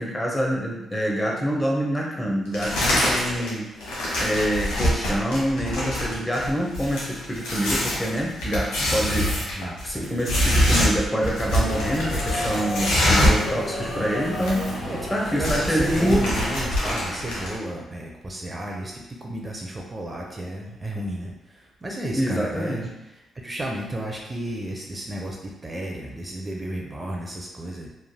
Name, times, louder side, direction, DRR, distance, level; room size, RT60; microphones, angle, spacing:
voice 1, 0.0-3.7 4.2-9.4 9.8-14.8 15.1-16.3 22.1-22.9, equal, 15° left, -2 dB, 0.8 m, -26 dB
sound 1, 2.5-3.5 3.8-13.5 13.7-13.8 14.1-14.8 15.1-17.6, equal, 85° left, 1.0 m, -24 dB
voice 2, 9.5-10.1 14.8-22.9 23.4-27.9, right 1 dB, 30° right, -1 dB, 0.5 m, -32 dB
Subway metro underground, 11.4-17.6, left 1 dB, 55° left, 1.4 m, -33 dB
3.1 x 2.5 x 2.2 m, 0.98 s
supercardioid pair, 60°, 0 cm